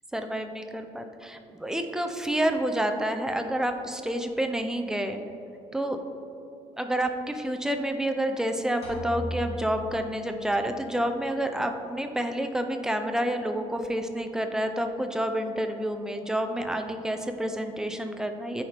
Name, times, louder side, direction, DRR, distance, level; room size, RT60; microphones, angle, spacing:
voice 1, 0.1-5.2 5.7-6.0 6.8-18.6, right 1 dB, 5° right, 6 dB, 0.3 m, -29 dB
sound 1, 8.8-10.7, equal, 55° left, 1.4 m, -37 dB
9.4 x 4.3 x 3.3 m, 2.7 s
cardioid pair, 175°, 12 cm